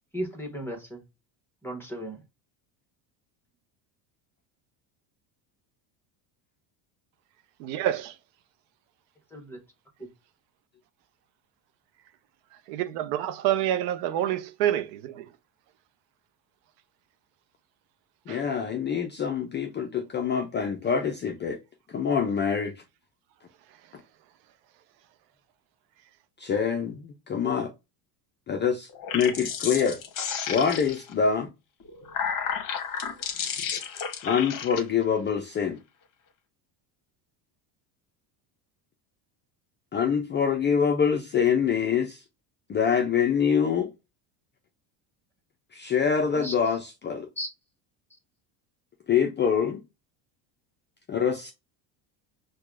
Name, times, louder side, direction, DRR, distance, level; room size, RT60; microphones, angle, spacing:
voice 1, 0.1-1.0 1.6-2.2 9.3-9.6 46.3-46.5 47.4-47.5, right 1 dB, 5° left, 0.9 m, -35 dB
voice 2, 7.6-8.1 12.7-15.2 18.3-18.4, right 12 dB, 85° right, 0.6 m, -27 dB
voice 3, 18.3-21.6 21.9-22.7 26.4-27.7 28.5-30.0 30.5-31.5 34.2-35.8 39.9-42.2 42.7-43.9 45.7-47.3 49.1-49.8 51.1-51.5, left 7 dB, 25° left, 0.3 m, -25 dB
sound 1, 28.9-31.1 31.8-34.8, left 7 dB, 40° left, 0.9 m, -32 dB
4.5 x 2.3 x 2.3 m
supercardioid pair, 105°, 49 cm